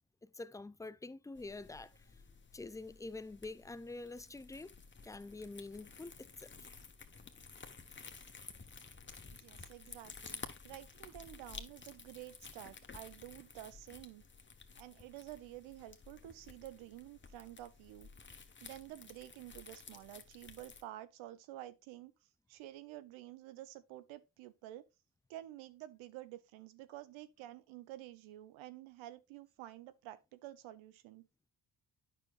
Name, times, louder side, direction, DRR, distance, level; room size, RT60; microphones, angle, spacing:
voice 1, 0.2-2.1 2.5-4.7 5.0-6.7, left 3 dB, 10° left, 0.4 m, -47 dB
sound 1, 1.4-20.8, left 4 dB, 25° left, 1.2 m, -53 dB
voice 2, 9.4-14.2 14.8-18.1 18.6-22.1 22.5-24.8 25.3-31.3, right 14 dB, 80° right, 0.8 m, -50 dB
9.1 x 6.1 x 2.5 m
hypercardioid pair, 50°, 47 cm